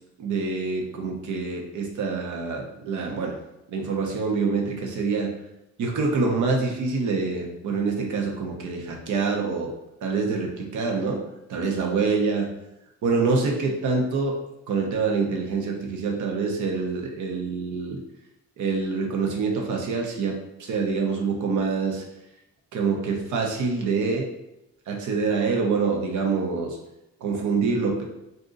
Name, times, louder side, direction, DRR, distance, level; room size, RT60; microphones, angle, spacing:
voice 1, 0.2-3.4 3.7-5.3 5.8-9.7 10.0-11.2 11.5-12.5 13.0-14.3 14.7-18.0 18.6-22.0 22.7-24.3 24.9-26.8 27.2-28.0, right 4 dB, 75° right, 1 dB, 0.8 m, -26 dB
2.6 x 2.5 x 3.8 m, 0.90 s
cardioid pair, 90°, 30 cm